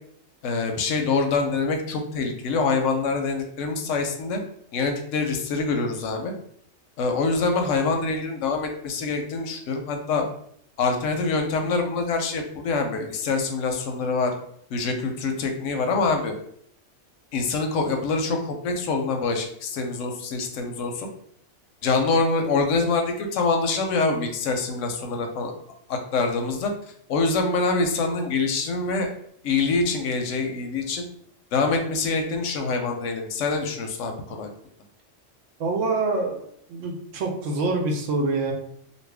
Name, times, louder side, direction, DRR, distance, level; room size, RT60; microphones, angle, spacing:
voice 1, 0.4-4.4 4.7-6.3 7.0-10.2 10.8-14.3 14.7-16.3 17.3-21.1 21.8-25.5 25.9-26.7 27.1-29.1 29.4-31.0 31.5-34.5, left 4 dB, 90° left, 4 dB, 0.9 m, -25 dB
voice 2, 35.6-38.5, right 3 dB, 85° right, 2 dB, 1.0 m, -26 dB
2.7 x 2.5 x 3.3 m, 0.67 s
omnidirectional pair, 1.3 m